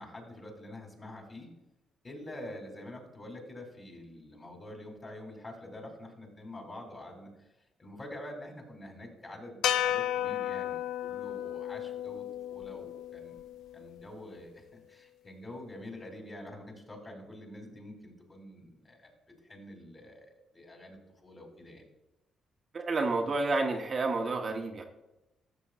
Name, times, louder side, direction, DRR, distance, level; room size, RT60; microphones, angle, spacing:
voice 1, 0.0-1.5 2.0-7.5 7.8-13.4 13.7-19.1 19.4-21.9, left 1 dB, 30° left, 2 dB, 2.7 m, -46 dB
sound 1, 9.6-14.0, left 11 dB, 85° left, 0.3 m, -33 dB
voice 2, 22.7-24.8, right 3 dB, 40° right, 2 dB, 0.9 m, -30 dB
12.5 x 7.2 x 2.4 m, 0.99 s
cardioid pair, 90°, 0 cm